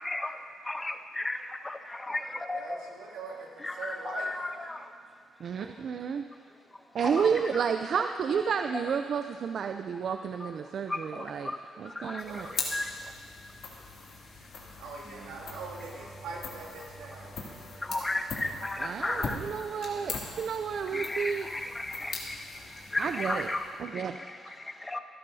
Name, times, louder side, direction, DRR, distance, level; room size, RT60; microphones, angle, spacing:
voice 1, 0.0-2.9 3.6-5.8 6.3-7.6 7.9-8.6 10.4-14.9 15.5-15.6 15.9-16.3 17.0-19.8 20.0-20.3 20.8-25.0, left 2 dB, 20° left, 8 dB, 0.7 m, -37 dB
voice 2, 2.1-4.3 5.5-5.7 7.1-7.2 12.2-12.6 14.7-17.4, right 4 dB, 90° right, -4 dB, 2.5 m, -43 dB
voice 3, 5.4-6.2 6.9-11.5 11.8-12.5 18.8-21.5 23.0-23.5 23.8-24.1, right 6 dB, 60° right, 7 dB, 0.4 m, -31 dB
sound 1, 12.2-23.9, left 4 dB, 65° left, 2.5 m, -41 dB
sound 2, 15.0-22.5, right 2 dB, 35° right, 2.3 m, -53 dB
27.5 x 11.0 x 2.7 m, 2.3 s
cardioid pair, 90°, 0 cm